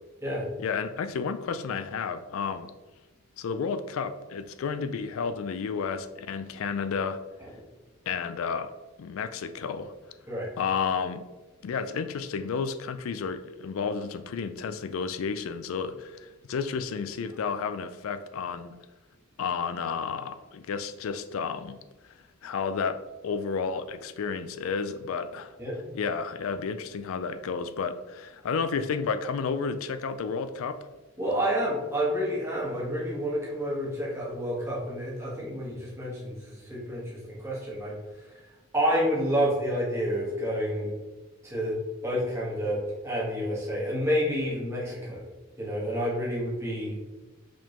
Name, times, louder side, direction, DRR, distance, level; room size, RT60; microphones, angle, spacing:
voice 1, 0.6-2.7 3.4-7.2 8.1-8.7 9.0-9.9 10.6-11.2 11.6-18.7 19.4-21.8 22.4-23.0 23.2-25.5 25.9-30.8, left 5 dB, 75° left, 11 dB, 0.4 m, -31 dB
voice 2, 31.2-37.9 38.7-40.9 41.4-45.2 45.6-47.0, equal, 15° right, -5 dB, 1.3 m, -29 dB
5.0 x 3.5 x 3.0 m, 1.2 s
head